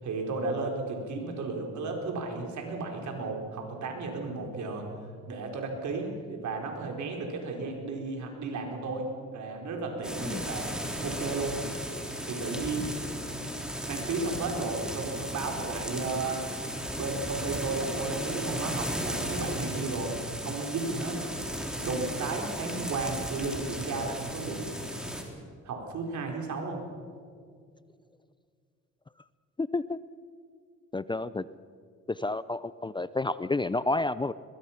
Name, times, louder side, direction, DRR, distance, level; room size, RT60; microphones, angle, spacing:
voice 1, 0.0-4.9 5.3-10.7 11.0-11.6 12.2-12.9 13.9-16.5 16.9-20.2 20.4-21.2 21.8-24.7 25.6-26.8, right 3 dB, 70° right, 2 dB, 4.3 m, -34 dB
sound 1, 10.0-25.2, equal, ahead, 3.6 m, -35 dB
voice 2, 29.6-30.0 30.9-31.5 32.1-34.3, left 2 dB, 15° left, 16 dB, 0.5 m, -30 dB
22.0 x 21.5 x 5.9 m, 2.2 s
cardioid pair, 90°, 30 cm